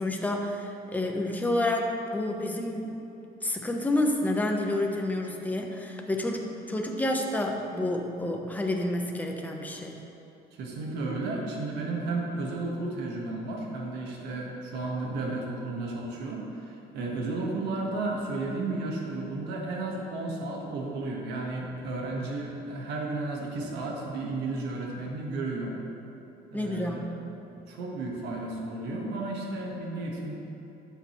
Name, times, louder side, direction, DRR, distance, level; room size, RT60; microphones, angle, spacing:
voice 1, 0.0-2.9 3.4-10.0 26.5-27.0, left 1 dB, 10° left, 1 dB, 1.0 m, -29 dB
voice 2, 10.5-25.7 26.5-27.1 27.5-30.3, right 2 dB, 85° right, -1 dB, 1.7 m, -33 dB
12.5 x 7.7 x 3.2 m, 2.9 s
cardioid pair, 110°, 17 cm